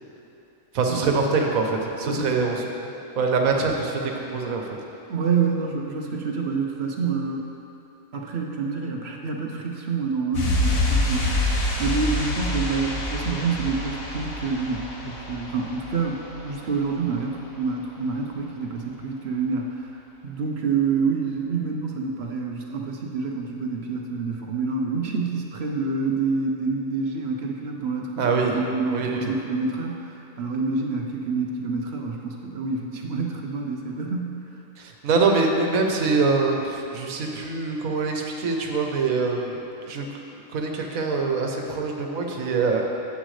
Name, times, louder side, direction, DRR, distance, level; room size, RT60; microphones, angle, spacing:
voice 1, 0.7-2.7 3.2-4.6 28.2-28.6 28.9-29.3 34.8-40.1 40.5-42.9, right 4 dB, 85° right, 2 dB, 1.3 m, -24 dB
voice 2, 5.1-7.5 8.1-16.2 16.4-19.9 20.2-34.4, right 4 dB, 60° right, 0 dB, 0.8 m, -27 dB
sound 1, 10.3-16.9 17.1-17.2, left 1 dB, 80° left, 1.6 m, -27 dB
10.0 x 8.1 x 3.2 m, 2.8 s
omnidirectional pair, 1.4 m